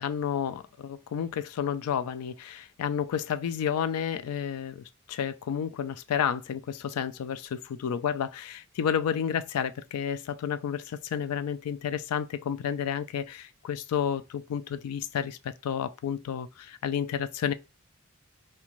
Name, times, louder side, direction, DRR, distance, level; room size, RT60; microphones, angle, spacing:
voice 1, 0.0-17.5, left 8 dB, 90° left, 0.3 m, -31 dB
2.5 x 2.2 x 2.9 m
head